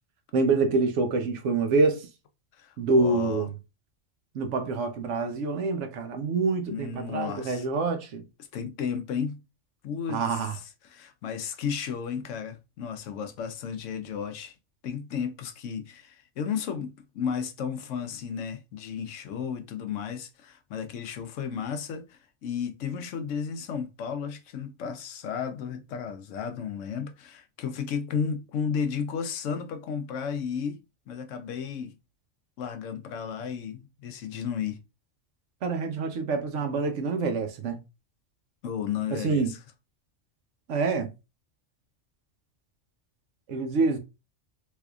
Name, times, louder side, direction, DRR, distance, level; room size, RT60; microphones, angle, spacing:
voice 1, 0.3-2.1 2.8-3.6 4.3-8.2 10.1-10.5 35.6-37.8 39.1-39.5 40.7-41.1 43.5-44.0, right 3 dB, 75° right, 1.0 m, -26 dB
voice 2, 2.6-3.5 6.7-7.7 8.5-9.4 9.8-10.2 10.9-14.5 14.8-32.0 32.6-34.8 38.6-39.6, left 7 dB, 80° left, 1.0 m, -33 dB
3.5 x 3.3 x 2.3 m
omnidirectional pair, 1.3 m